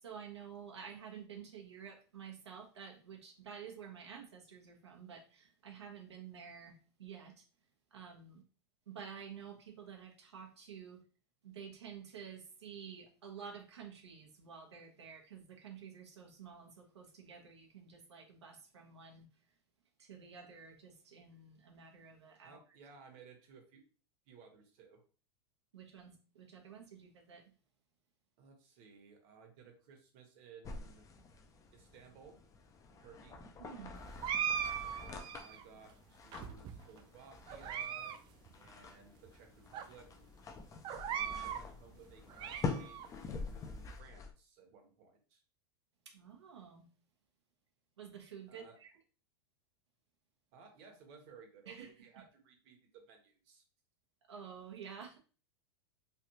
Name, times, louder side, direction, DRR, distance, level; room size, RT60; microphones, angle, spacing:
voice 1, 0.0-7.5 7.9-8.4 8.9-11.0 11.4-19.3 20.0-22.6 25.7-27.5 33.6-34.0 46.1-46.9 48.0-48.9 51.7-51.9 54.3-55.2, right 7 dB, 90° right, 0.9 m, -51 dB
voice 2, 22.4-23.8 24.3-25.0 28.4-31.0 31.7-32.4 32.9-33.4 34.8-38.2 38.5-40.1 41.1-45.4 48.5-48.8 50.5-53.6, right 5 dB, 55° right, 1.1 m, -58 dB
sound 1, 30.6-44.3, left 4 dB, 25° left, 0.5 m, -46 dB
sound 2, 34.2-35.6 36.3-37.0 37.5-38.2 38.5-38.6 39.3-39.4 39.7-39.9 40.8-41.7 42.1-43.1, right 8 dB, 35° right, 0.3 m, -39 dB
3.3 x 2.5 x 2.8 m
hypercardioid pair, 100°, 14 cm